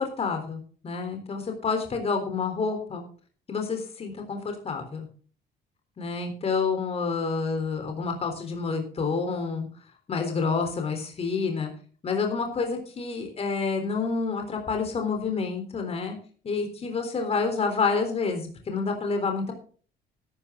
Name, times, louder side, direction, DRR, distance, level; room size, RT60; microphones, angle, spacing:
voice 1, 0.0-3.0 3.5-5.1 6.0-9.7 10.1-11.7 12.0-16.2 16.4-19.5, left 4 dB, 35° left, 5 dB, 3.7 m, -28 dB
13.0 x 12.0 x 3.8 m, 0.41 s
cardioid pair, 110°, 17 cm